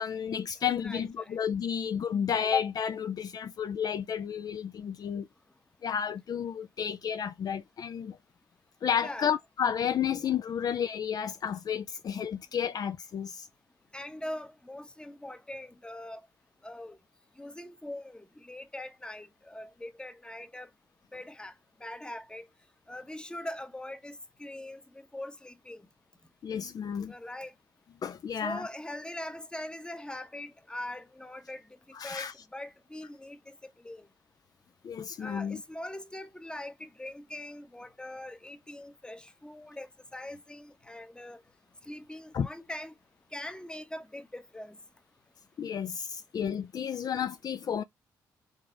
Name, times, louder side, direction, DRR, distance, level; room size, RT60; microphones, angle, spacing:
voice 1, 0.0-5.3 5.8-8.2 8.8-13.5 26.4-27.1 28.0-28.7 31.9-32.3 34.8-35.6 42.3-42.5 45.6-47.8, left 8 dB, 55° left, 0.4 m, -31 dB
voice 2, 0.8-1.4 9.0-9.4 13.9-16.2 16.6-17.0 17.4-20.7 21.1-21.5 21.8-22.4 22.9-25.9 27.1-27.5 28.4-31.6 32.0-34.1 35.2-41.4 41.9-42.9 43.3-44.8, left 1 dB, 10° left, 0.8 m, -42 dB
3.9 x 3.4 x 3.7 m
supercardioid pair, 60°, 8 cm